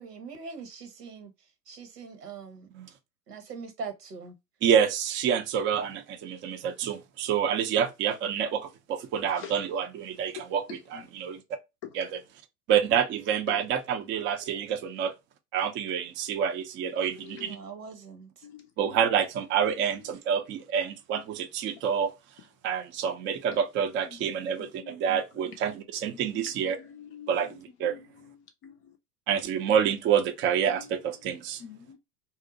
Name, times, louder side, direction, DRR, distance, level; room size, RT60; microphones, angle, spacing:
voice 1, 0.0-1.3 1.7-2.7 3.3-4.3 17.4-18.3, right 5 dB, 80° right, 1.1 m, -41 dB
voice 2, 4.6-11.4 11.9-12.2 12.7-15.1 15.5-17.6 18.8-22.1 22.6-26.8 27.3-28.0 29.3-31.6, right 8 dB, 25° right, 0.5 m, -28 dB
voice 3, 17.0-17.5 18.4-18.7 24.6-25.2 26.4-26.5 26.8-27.4 27.8-28.0 28.6-28.8 30.7-30.9 31.6-32.0, left 9 dB, 25° left, 0.4 m, -45 dB
2.7 x 2.1 x 3.9 m
hypercardioid pair, 95°, 47 cm